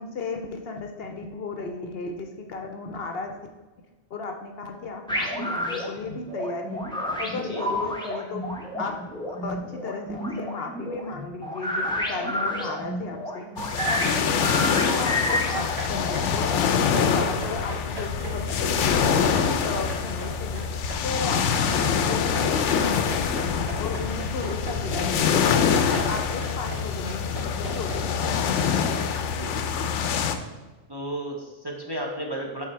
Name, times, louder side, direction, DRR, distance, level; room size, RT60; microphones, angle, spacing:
voice 1, 0.0-3.4 4.1-6.8 7.2-8.5 8.8-9.0 9.4-13.5 13.9-20.7 21.0-23.5 23.8-29.1, left 3 dB, 60° left, 4 dB, 0.8 m, -35 dB
sound 1, 5.1-16.2, equal, 5° left, 0.9 m, -30 dB
sound 2, 13.6-30.4, left 7 dB, 90° left, 0.9 m, -25 dB
sound 3, 15.6-28.0, equal, 45° right, 2.5 m, -38 dB
voice 2, 29.2-29.9 30.9-32.6, right 1 dB, 25° right, -1 dB, 0.9 m, -35 dB
8.4 x 3.9 x 4.4 m, 1.2 s
omnidirectional pair, 1.2 m